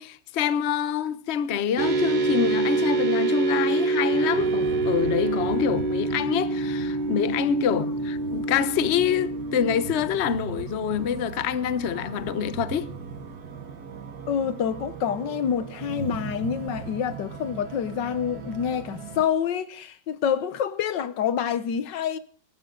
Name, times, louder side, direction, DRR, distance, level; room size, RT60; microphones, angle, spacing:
voice 1, 0.0-12.9, left 8 dB, 50° left, 0.9 m, -26 dB
sound 1, 1.8-10.0, right 3 dB, 30° right, 1.0 m, -26 dB
sound 2, 4.1-19.2, right 7 dB, 60° right, 1.7 m, -39 dB
voice 2, 14.3-22.2, left 8 dB, 85° left, 1.6 m, -27 dB
21.5 x 12.0 x 3.8 m
omnidirectional pair, 1.9 m